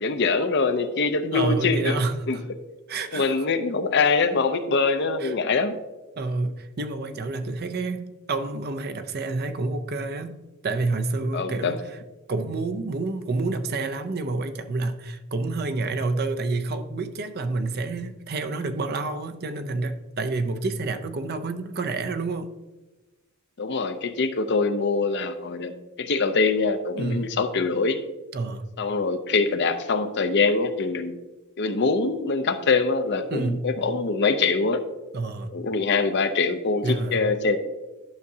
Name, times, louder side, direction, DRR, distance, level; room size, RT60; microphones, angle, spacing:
voice 1, 0.0-2.0 2.3-2.4 3.1-5.8 11.3-11.8 23.6-25.7 26.0-28.0 28.8-31.1 31.6-34.8 35.5-37.6, left 4 dB, 55° left, 9 dB, 0.6 m, -24 dB
voice 2, 1.3-2.4 2.9-3.5 5.2-5.3 6.2-10.4 10.6-11.8 12.3-22.5 27.0-27.3 28.3-28.7 33.3-33.7 35.1-35.6 36.8-37.2, right 3 dB, 45° right, 8 dB, 0.5 m, -28 dB
11.0 x 5.8 x 2.7 m, 1.1 s
head